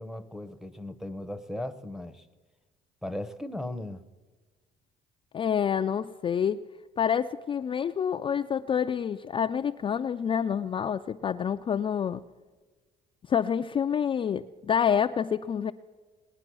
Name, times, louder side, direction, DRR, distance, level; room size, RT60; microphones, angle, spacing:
voice 1, 0.0-2.3 3.0-4.0, left 1 dB, ahead, 8 dB, 0.7 m, -37 dB
voice 2, 5.3-6.6 7.0-12.2 13.3-15.7, left 8 dB, 30° left, 7 dB, 0.3 m, -27 dB
20.0 x 9.7 x 6.1 m, 1.3 s
cardioid pair, 110°, 17 cm